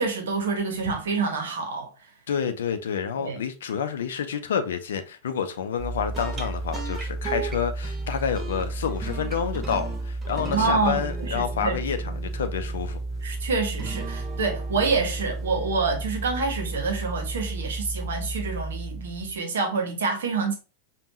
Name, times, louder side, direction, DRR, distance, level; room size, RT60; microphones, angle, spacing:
voice 1, 0.0-1.9 3.2-3.4 10.5-11.8 13.2-20.5, right 4 dB, 65° right, 1.1 m, -27 dB
voice 2, 2.3-13.0, left 7 dB, 60° left, 0.5 m, -29 dB
sound 1, 5.8-19.4, right 2 dB, 20° right, 0.9 m, -32 dB
5.2 x 2.5 x 3.0 m
figure-of-eight pair, 90°, 0 cm